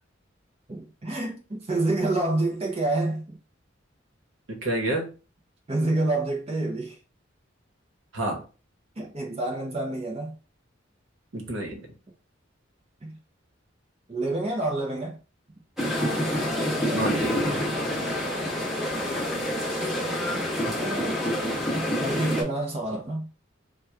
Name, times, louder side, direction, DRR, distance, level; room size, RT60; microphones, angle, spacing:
voice 1, 0.7-3.4 5.7-7.0 9.0-10.3 13.0-13.2 14.1-15.2 18.4-18.5 20.3-21.2 22.0-23.3, right 2 dB, 30° right, 0.6 m, -28 dB
voice 2, 4.5-5.1 8.1-8.4 11.3-11.8 16.9-17.7, right 1 dB, 70° right, 1.0 m, -29 dB
sound 1, 15.8-22.4, equal, ahead, 0.9 m, -27 dB
3.0 x 2.2 x 3.4 m
head